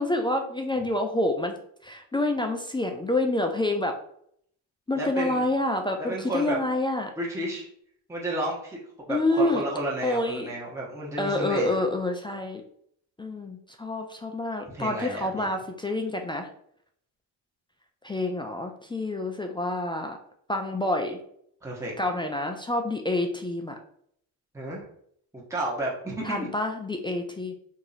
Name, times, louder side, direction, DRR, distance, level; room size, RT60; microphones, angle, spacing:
voice 1, 0.0-1.5 1.8-4.0 4.9-7.1 9.1-9.6 10.0-10.5 11.2-12.6 13.2-16.5 18.0-20.2 20.5-21.2 22.0-23.7 26.2-27.5, left 2 dB, 10° left, 4 dB, 0.4 m, -27 dB
voice 2, 4.9-5.4 6.0-6.6 7.2-7.7 8.1-8.8 9.1-11.8 14.7-15.5 21.6-21.9 24.5-24.9 25.3-26.5, right 1 dB, 5° right, -4 dB, 1.0 m, -32 dB
3.0 x 2.8 x 3.9 m, 0.67 s
supercardioid pair, 75°, 41 cm